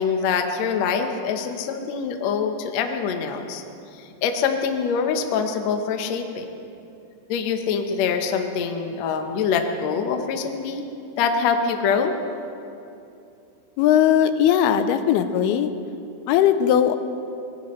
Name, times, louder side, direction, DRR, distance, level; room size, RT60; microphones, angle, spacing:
voice 1, 0.0-3.6 4.0-6.5 7.3-10.8 11.2-12.1, left 6 dB, 70° left, 5 dB, 1.7 m, -24 dB
voice 2, 13.8-15.7 16.3-17.0, left 9 dB, 85° left, 10 dB, 2.6 m, -18 dB
24.5 x 18.5 x 3.2 m, 2.7 s
omnidirectional pair, 4.5 m